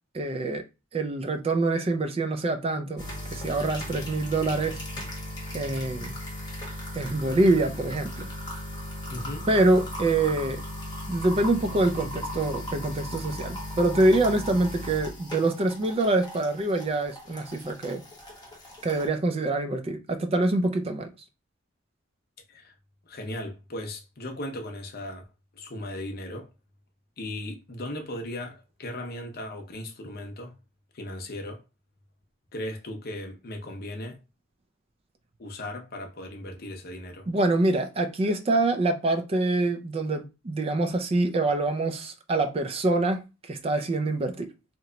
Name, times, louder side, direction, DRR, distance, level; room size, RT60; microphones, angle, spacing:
voice 1, 0.1-0.6 0.9-3.1 3.3-4.9 5.5-6.1 6.9-8.3 9.5-10.6 11.1-18.0 18.8-21.1 37.3-44.5, right 2 dB, 30° right, 0.3 m, -25 dB
sound 1, 3.0-19.1, left 1 dB, 20° left, 1.0 m, -37 dB
voice 2, 9.1-9.5 22.5-22.7 23.0-25.2 25.5-26.5 27.2-30.5 30.9-31.6 32.5-34.2 35.4-37.3, left 1 dB, 50° left, 0.7 m, -37 dB
2.9 x 2.2 x 3.8 m
head